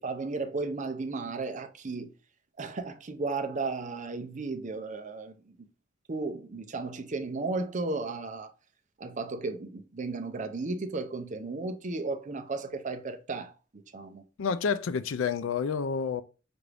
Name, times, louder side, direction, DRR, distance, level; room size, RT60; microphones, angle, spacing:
voice 1, 0.0-2.1 2.6-5.6 6.1-8.5 9.0-14.2, right 3 dB, 40° right, 0.6 m, -34 dB
voice 2, 14.4-16.2, left 6 dB, 85° left, 0.4 m, -29 dB
5.8 x 2.6 x 3.3 m
head